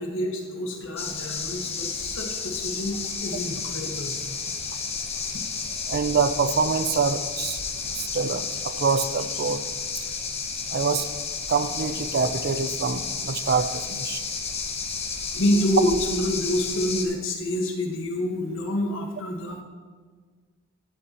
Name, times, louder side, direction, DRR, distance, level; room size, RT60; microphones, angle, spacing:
voice 1, 0.0-4.2 15.3-19.6, left 1 dB, 70° left, 2 dB, 1.4 m, -27 dB
sound 1, 1.0-17.1, left 5 dB, 30° left, 1.0 m, -32 dB
voice 2, 5.9-7.6 7.9-9.6 10.7-11.1 11.5-14.2, right 5 dB, 50° right, 12 dB, 0.5 m, -25 dB
12.5 x 9.7 x 2.9 m, 1.6 s
head